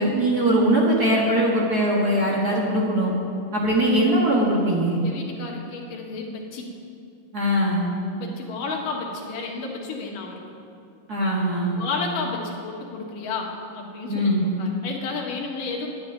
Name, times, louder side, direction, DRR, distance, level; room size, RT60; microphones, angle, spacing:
voice 1, 0.0-3.1 3.5-5.0 7.3-7.9 11.1-11.8 14.1-14.4, right 1 dB, 40° right, -4 dB, 1.6 m, -21 dB
voice 2, 5.0-6.7 8.2-10.4 11.8-14.3 14.6-15.9, left 4 dB, 75° left, 0 dB, 3.0 m, -32 dB
10.5 x 8.7 x 10.0 m, 2.6 s
omnidirectional pair, 3.8 m